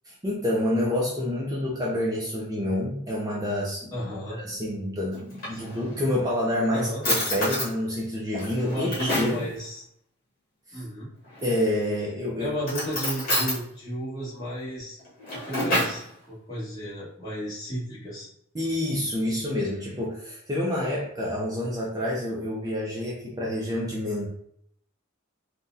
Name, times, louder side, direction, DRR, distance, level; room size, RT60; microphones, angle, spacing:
voice 1, 0.0-4.1 4.4-9.4 10.7-10.8 11.4-12.5 18.5-24.3, left 1 dB, 20° right, -4 dB, 0.4 m, -28 dB
voice 2, 3.9-4.4 5.5-5.8 6.7-7.0 8.6-9.8 10.7-11.1 12.4-15.0 15.3-18.3, equal, 20° left, -8 dB, 1.3 m, -33 dB
Drawer open or close, 5.1-6.1 6.6-6.7 7.0-7.7 8.3-9.4 11.3-11.8 12.6-13.6 15.0-16.0, left 1 dB, 45° left, 1.5 m, -28 dB
3.7 x 2.1 x 2.6 m, 0.69 s
head